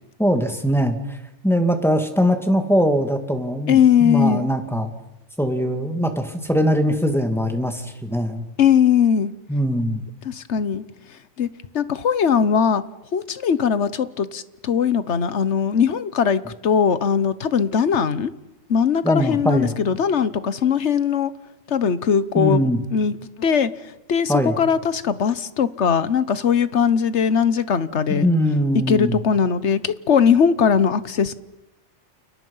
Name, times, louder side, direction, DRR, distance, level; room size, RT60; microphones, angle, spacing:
voice 1, 0.2-1.2 1.4-4.9 5.4-8.4 9.5-10.0 19.0-19.7 22.4-22.8 24.3-24.6 28.2-29.2, equal, ahead, 5 dB, 2.5 m, -21 dB
voice 2, 3.7-4.5 8.6-9.3 10.2-10.8 11.4-11.5 11.7-12.8 13.1-18.3 18.7-21.3 21.7-23.7 24.1-28.3 28.9-31.3, left 7 dB, 70° left, 15 dB, 1.4 m, -20 dB
29.5 x 29.0 x 5.7 m, 0.94 s
omnidirectional pair, 1.2 m